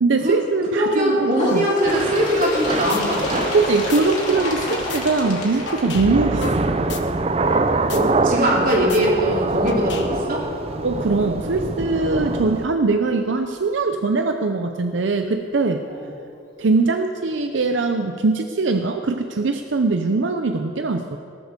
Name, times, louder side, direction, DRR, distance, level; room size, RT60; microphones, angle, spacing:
voice 1, 0.0-1.7 3.5-6.9 10.8-15.8 16.6-21.2, right 3 dB, 85° right, 6 dB, 0.6 m, -21 dB
voice 2, 0.7-3.5 7.9-10.4 15.9-16.1, equal, 50° right, -3 dB, 3.3 m, -21 dB
Bird, 1.3-6.7 7.6-7.7 8.1-8.2 9.1-9.2 10.1-10.2 11.1-11.2, left 1 dB, 40° left, 2.9 m, -29 dB
Thunder / Rain, 1.8-12.7, right 3 dB, 35° right, 0.5 m, -25 dB
sound 1, 2.4-2.6 2.9-4.0 4.3-7.6 7.9-8.0 8.3-10.4, left 4 dB, 75° left, 1.1 m, -33 dB
18.5 x 8.1 x 6.7 m, 2.4 s
head